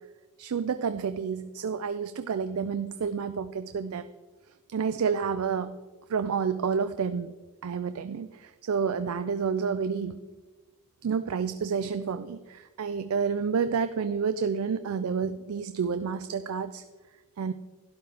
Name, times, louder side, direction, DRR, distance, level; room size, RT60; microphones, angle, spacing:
voice 1, 0.4-4.1 4.7-5.8 6.1-7.3 7.6-10.2 11.0-16.8 17.4-17.5, right 6 dB, 80° right, 10 dB, 0.4 m, -29 dB
12.5 x 10.5 x 3.4 m, 1.3 s
head